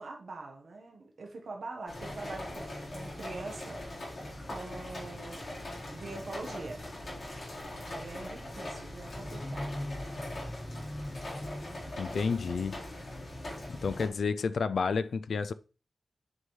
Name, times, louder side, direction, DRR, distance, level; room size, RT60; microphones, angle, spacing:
voice 1, 0.0-3.8 4.4-5.5 5.9-6.8 7.8-9.8, right 3 dB, 60° right, 1.2 m, -43 dB
sound 1, 1.9-14.1, left 1 dB, 55° left, 3.9 m, -40 dB
voice 2, 12.0-12.8 13.8-15.5, left 5 dB, 75° left, 0.3 m, -30 dB
9.6 x 5.4 x 3.2 m
wide cardioid pair, 175°, 0 cm